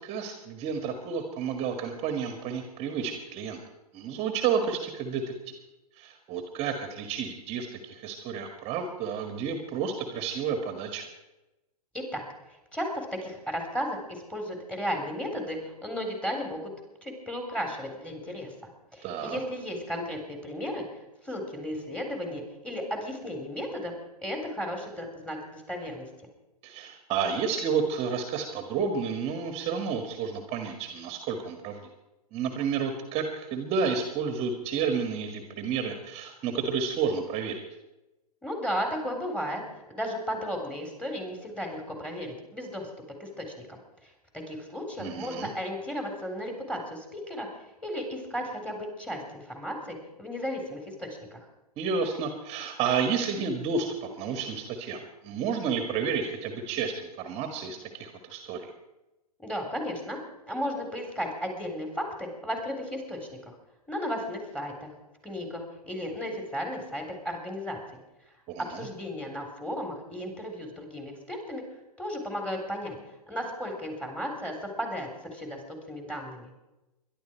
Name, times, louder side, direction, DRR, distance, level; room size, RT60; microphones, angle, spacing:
voice 1, 0.0-3.6 3.9-5.2 6.0-11.1 19.0-19.4 26.6-31.9 32.3-37.6 45.0-45.5 51.8-58.7 68.5-68.9, right 6 dB, 30° right, 5 dB, 1.9 m, -31 dB
voice 2, 12.7-16.6 17.0-18.5 18.9-23.9 24.2-26.1 38.4-42.9 43.2-44.1 44.5-47.5 47.8-51.5 59.4-60.2 60.5-63.2 63.5-63.6 63.9-64.9 65.2-68.0 68.6-71.6 72.0-73.0 73.3-76.5, equal, 5° left, 2 dB, 3.8 m, -34 dB
23.0 x 11.5 x 4.6 m, 0.98 s
hypercardioid pair, 120°, 20 cm